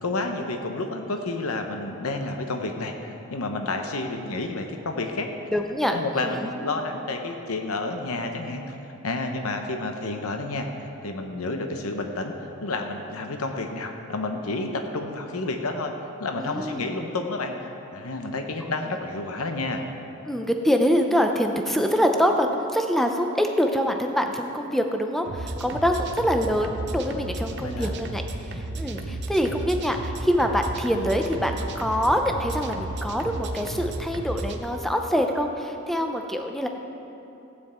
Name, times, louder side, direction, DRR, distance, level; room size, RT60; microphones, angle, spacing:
voice 1, 0.0-5.3 5.9-8.7 9.0-10.7 11.0-15.9 16.2-19.8 27.6-27.9 29.0-29.2, left 2 dB, 85° left, 4 dB, 0.9 m, -30 dB
voice 2, 5.5-6.5 16.4-16.9 20.3-36.7, equal, ahead, 4 dB, 0.6 m, -25 dB
sound 1, 25.2-34.6, right 2 dB, 50° right, 0.8 m, -33 dB
15.5 x 9.0 x 4.4 m, 2.9 s
head